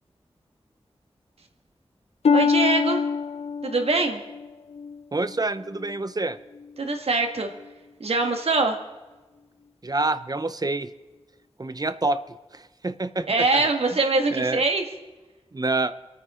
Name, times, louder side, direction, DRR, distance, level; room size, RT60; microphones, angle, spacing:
Harp, 2.2-6.0 6.5-6.9 7.6-7.7, left 5 dB, 80° left, 0.4 m, -25 dB
voice 1, 2.3-3.0 3.6-4.2 6.8-7.5 8.0-8.8 13.3-14.8, right 3 dB, 75° right, 4 dB, 1.9 m, -23 dB
voice 2, 5.1-6.4 9.8-10.9 11.6-12.2 12.5-13.3 13.5-13.7 14.3-14.6 15.5-15.9, right 2 dB, 40° right, 12 dB, 0.7 m, -27 dB
27.0 x 9.4 x 3.8 m, 1.2 s
cardioid pair, 50°, 10 cm